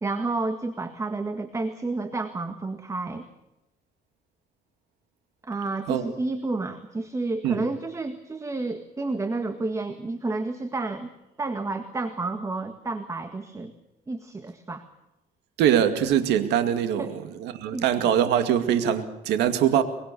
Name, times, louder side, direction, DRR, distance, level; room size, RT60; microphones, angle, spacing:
voice 1, 0.0-3.3 5.4-11.1 11.4-13.7 14.1-14.8 17.0-17.1 17.7-18.2, right 3 dB, 20° right, 9 dB, 1.7 m, -30 dB
voice 2, 15.6-19.8, right 9 dB, 85° right, 9 dB, 2.4 m, -23 dB
23.5 x 23.0 x 7.0 m, 0.93 s
cardioid pair, 110°, 17 cm